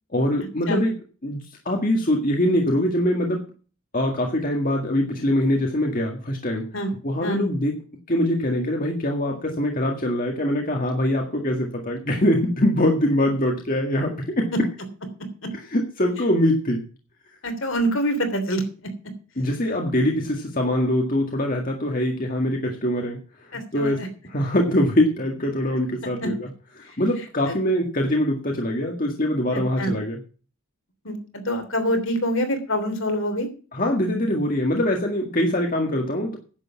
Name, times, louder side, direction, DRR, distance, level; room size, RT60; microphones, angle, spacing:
voice 1, 0.1-0.9 1.2-3.5 3.9-6.6 7.0-7.8 8.1-14.5 15.5-16.8 19.4-24.0 24.3-26.5 26.8-30.2 33.7-36.4, left 1 dB, 40° left, 1 dB, 1.9 m, -23 dB
voice 2, 17.4-18.6 23.5-24.1 26.2-26.3 29.8-29.9 31.0-31.2 31.4-33.5, equal, 65° left, 7 dB, 3.2 m, -25 dB
10.5 x 8.3 x 7.1 m, 0.38 s
head